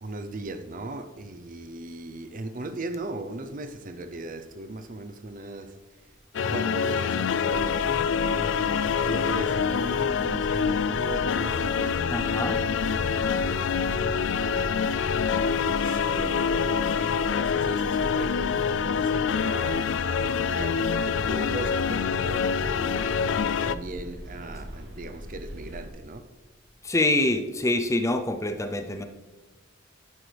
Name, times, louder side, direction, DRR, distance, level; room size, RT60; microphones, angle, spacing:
voice 1, 0.0-5.8 6.4-8.6 9.0-12.1 12.9-23.1 23.6-26.3, right 2 dB, 45° right, 0.6 m, -38 dB
sound 1, 6.3-23.8, left 6 dB, 70° left, 0.4 m, -26 dB
sound 2, 7.5-25.9, equal, 65° right, 1.7 m, -40 dB
voice 2, 12.1-12.6 26.8-29.0, left 2 dB, 15° left, 0.5 m, -25 dB
9.9 x 9.5 x 3.4 m
head